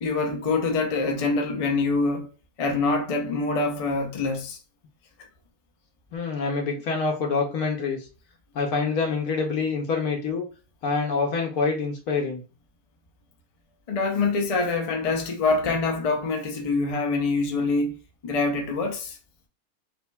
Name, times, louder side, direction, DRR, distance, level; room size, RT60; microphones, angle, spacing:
voice 1, 0.0-2.3 2.6-4.6 13.9-17.9 18.2-19.2, left 3 dB, 55° left, 0.4 m, -25 dB
voice 2, 6.1-8.1 8.5-10.5 10.8-12.4, left 4 dB, 75° left, 1.2 m, -26 dB
4.8 x 2.6 x 2.2 m
omnidirectional pair, 1.6 m